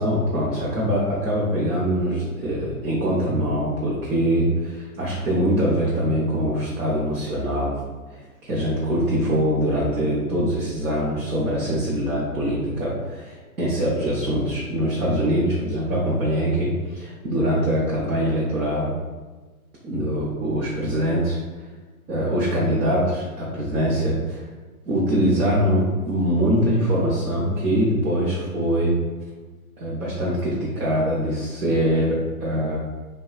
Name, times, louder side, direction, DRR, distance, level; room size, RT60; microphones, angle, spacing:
voice 1, 0.0-7.8 8.1-18.9 19.8-21.4 22.1-24.5 24.8-29.0 29.8-32.8, equal, 80° right, -6 dB, 0.8 m, -23 dB
2.8 x 2.2 x 2.4 m, 1.3 s
figure-of-eight pair, 115°, 44 cm